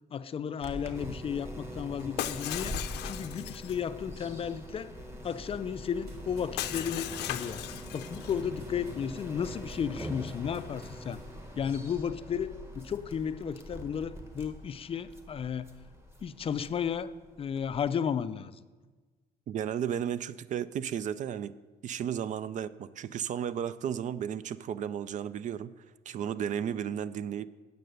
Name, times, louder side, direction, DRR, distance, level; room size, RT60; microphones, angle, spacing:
voice 1, 0.1-4.9 5.2-7.6 7.9-11.2 11.6-15.7 16.2-18.6, left 7 dB, 35° left, 0.4 m, -34 dB
sound 1, 0.6-17.8, equal, 15° right, 1.5 m, -43 dB
Shatter, 2.2-3.8 6.6-8.4, left 13 dB, 90° left, 0.6 m, -37 dB
sound 2, 6.0-11.3, right 1 dB, 70° right, 3.2 m, -55 dB
voice 2, 19.5-21.5 21.8-25.7 26.1-27.5, right 9 dB, 45° right, 0.4 m, -34 dB
9.2 x 6.5 x 6.7 m
cardioid pair, 110°, 17 cm